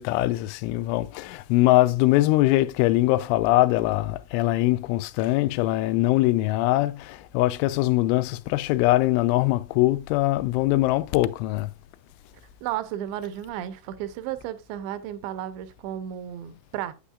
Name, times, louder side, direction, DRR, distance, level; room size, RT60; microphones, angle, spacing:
voice 1, 0.0-11.7, left 17 dB, 90° left, 3.0 m, -22 dB
voice 2, 12.6-16.9, right 11 dB, 80° right, 2.8 m, -33 dB
9.1 x 8.4 x 2.4 m
omnidirectional pair, 5.4 m